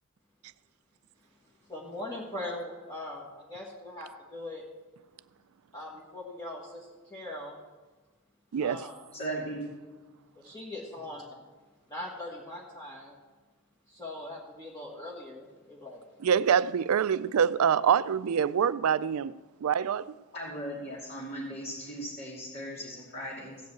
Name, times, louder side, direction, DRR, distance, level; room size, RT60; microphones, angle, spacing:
voice 1, 1.6-4.6 5.7-7.6 8.6-9.0 10.3-11.5 11.9-13.1 13.9-16.0, left 1 dB, 15° left, 1.7 m, -41 dB
voice 2, 8.5-8.8 16.2-19.3 19.6-20.1, right 7 dB, 65° right, 0.4 m, -25 dB
voice 3, 9.1-9.7 20.3-23.6, right 1 dB, 50° left, 2.8 m, -37 dB
16.0 x 5.4 x 7.9 m
head